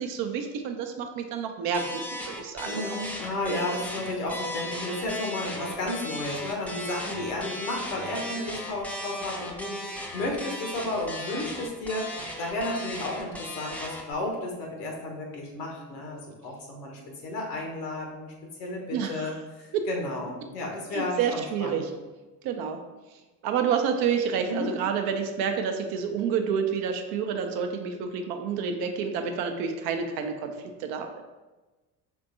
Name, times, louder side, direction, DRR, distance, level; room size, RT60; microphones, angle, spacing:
voice 1, 0.0-2.8 3.4-3.6 6.8-6.9 18.9-19.3 19.7-19.9 20.9-21.9 22.4-22.8 23.4-30.5 30.8-31.2, right 6 dB, 50° right, 5 dB, 0.6 m, -29 dB
sound 1, 1.7-14.1, left 1 dB, 5° left, 0.4 m, -37 dB
voice 2, 2.6-18.3 18.6-21.8 24.5-24.7, left 2 dB, 70° left, 0 dB, 1.3 m, -33 dB
5.2 x 3.3 x 2.7 m, 1.2 s
figure-of-eight pair, 60°, 49 cm